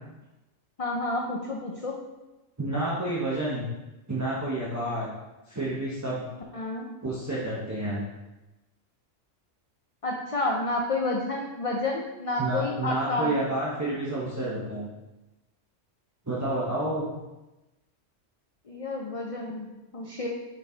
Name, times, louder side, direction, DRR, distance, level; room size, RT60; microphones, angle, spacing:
voice 1, 0.8-2.0 6.5-6.9 10.0-13.4 18.7-20.3, left 2 dB, 40° left, 0 dB, 0.5 m, -30 dB
voice 2, 2.6-3.7 4.1-5.1 5.5-6.3 7.0-8.0 12.4-14.9 16.3-17.1, right 1 dB, 15° right, -7 dB, 1.0 m, -29 dB
5.4 x 5.0 x 4.0 m, 1.0 s
omnidirectional pair, 1.3 m